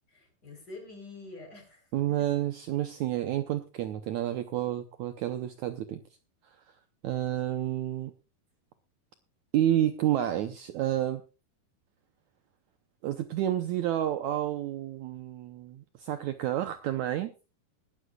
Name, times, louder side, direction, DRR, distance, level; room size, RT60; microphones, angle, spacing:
voice 1, 0.1-2.3, left 3 dB, 25° left, 4 dB, 4.3 m, -47 dB
voice 2, 1.9-6.0 7.0-8.1 9.5-11.2 13.0-17.3, right 12 dB, 85° right, 9 dB, 1.6 m, -30 dB
19.5 x 13.0 x 2.4 m, 0.31 s
omnidirectional pair, 4.4 m